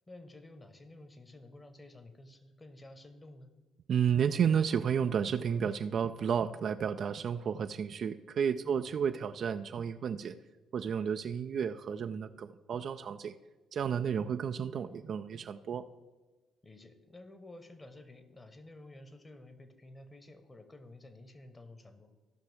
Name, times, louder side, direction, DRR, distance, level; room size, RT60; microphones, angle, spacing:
voice 1, 0.0-3.5 8.6-8.9 16.6-22.1, left 2 dB, 20° left, 8 dB, 1.2 m, -52 dB
voice 2, 3.9-10.4 10.7-13.3 13.7-15.8, right 7 dB, 50° right, 10 dB, 0.3 m, -32 dB
15.0 x 5.9 x 3.4 m, 1.2 s
figure-of-eight pair, 45°, 0 cm